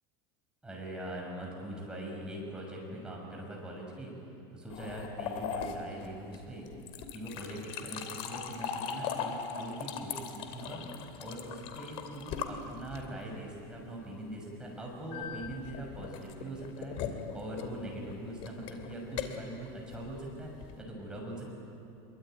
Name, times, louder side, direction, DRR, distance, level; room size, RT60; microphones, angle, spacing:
voice 1, 0.6-4.1 4.5-6.6 7.1-10.8 11.2-20.5 20.8-21.5, right 1 dB, 5° right, -2 dB, 6.5 m, -42 dB
sound 1, 4.7-13.3 15.1-20.8, left 7 dB, 50° left, 2.7 m, -40 dB
Bass guitar, 10.6-14.1, equal, 75° right, 5.8 m, -58 dB
25.5 x 23.5 x 9.3 m, 2.7 s
supercardioid pair, 150°, 12 cm